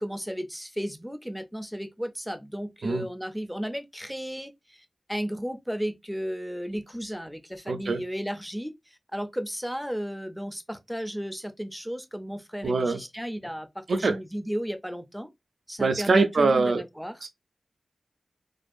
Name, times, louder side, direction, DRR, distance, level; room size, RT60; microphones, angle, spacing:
voice 1, 0.0-15.3 15.7-17.2, equal, ahead, 0.4 m, -34 dB
voice 2, 7.7-8.0 12.6-13.0 13.9-14.2 15.8-16.8 17.2-17.3, right 3 dB, 70° right, 0.3 m, -23 dB
2.5 x 2.3 x 2.4 m
wide cardioid pair, 85°, 0 cm